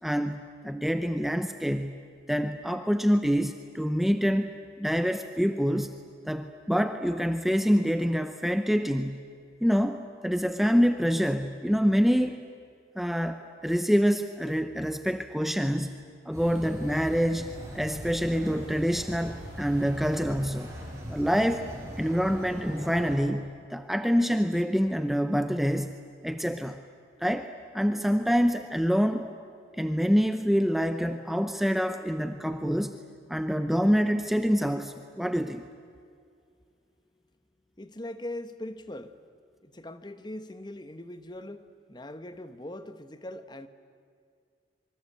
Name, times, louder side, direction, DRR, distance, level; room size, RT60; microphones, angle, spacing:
voice 1, 0.0-2.0 2.3-6.0 6.3-9.2 9.6-12.4 13.0-20.7 21.1-21.7 22.0-26.0 26.2-26.8 27.2-29.3 29.8-33.0 33.3-35.7, equal, ahead, 8 dB, 0.8 m, -26 dB
sound 1, 16.3-23.2, equal, 15° right, 7.5 m, -41 dB
voice 2, 37.8-39.2 39.6-43.7, left 1 dB, 25° left, 10 dB, 1.1 m, -41 dB
25.5 x 24.0 x 8.6 m, 2.2 s
head